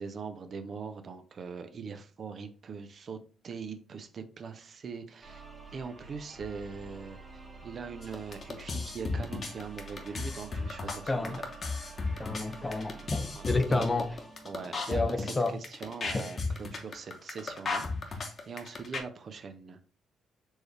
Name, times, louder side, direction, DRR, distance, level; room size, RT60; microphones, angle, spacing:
voice 1, 0.0-5.5 5.7-11.5 13.3-14.0 14.4-19.8, right 5 dB, 50° right, 0.5 m, -42 dB
sound 1, 5.2-15.2, right 3 dB, 25° right, 1.2 m, -49 dB
sound 2, 8.0-19.0, left 3 dB, 40° left, 1.0 m, -34 dB
voice 2, 11.1-11.4 12.2-14.1 14.9-15.6 16.1-16.3, left 2 dB, 20° left, 0.5 m, -30 dB
4.4 x 3.2 x 3.2 m
cardioid pair, 90°, 0 cm